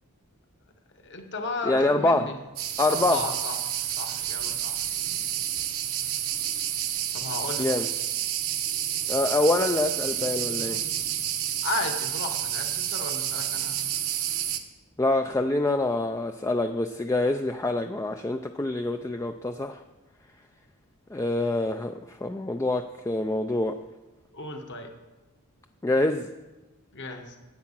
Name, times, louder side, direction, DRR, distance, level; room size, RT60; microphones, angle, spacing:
voice 1, 1.0-2.4 2.9-3.6 3.9-4.8 7.1-7.8 11.6-13.8 24.3-24.9 26.9-27.4, left 3 dB, 55° left, 4 dB, 1.3 m, -34 dB
voice 2, 1.7-2.3 2.8-3.2 7.6-7.9 9.1-10.8 15.0-19.8 21.1-23.8 25.8-26.3, left 2 dB, 15° left, 6 dB, 0.4 m, -25 dB
sound 1, 2.6-14.6, right 10 dB, 70° right, 1.0 m, -29 dB
10.5 x 8.6 x 7.3 m, 1.1 s
head